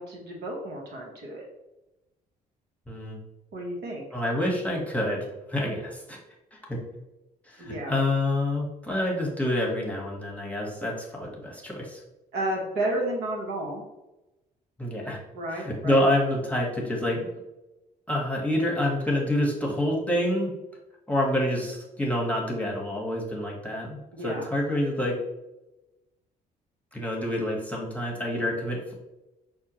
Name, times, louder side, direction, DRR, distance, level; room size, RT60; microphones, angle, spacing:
voice 1, 0.0-1.4 3.5-4.0 7.6-7.9 12.3-13.8 15.3-16.0 24.1-24.5, right 1 dB, 55° right, 0 dB, 1.0 m, -32 dB
voice 2, 2.9-3.2 4.1-6.2 6.5-6.8 7.5-12.0 14.8-15.2 15.5-17.3 18.1-20.5 21.1-25.2 26.9-28.9, left 1 dB, 5° left, -2 dB, 1.2 m, -27 dB
5.5 x 2.2 x 2.9 m, 0.97 s
figure-of-eight pair, 45°, 20 cm